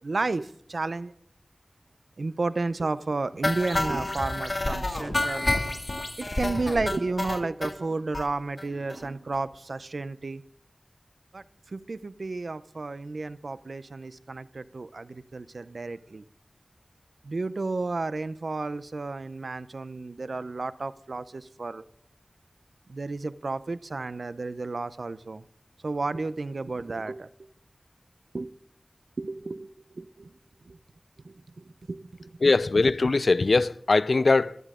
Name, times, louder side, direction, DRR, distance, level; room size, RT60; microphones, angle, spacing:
voice 1, 0.0-1.1 2.2-5.5 6.2-10.4 11.3-16.2 17.2-21.8 22.9-25.4 25.8-27.3 28.3-28.5 29.2-30.3 30.7-30.8 31.2-32.4, right 3 dB, 85° right, 0.7 m, -32 dB
sound 1, 3.4-7.7 8.1-8.3 8.6-8.7 8.9-9.0 9.3-9.4, left 2 dB, 50° left, 2.0 m, -29 dB
voice 2, 32.4-34.6, left 3 dB, 80° left, 0.5 m, -21 dB
17.5 x 13.5 x 3.8 m
wide cardioid pair, 45°, 0 cm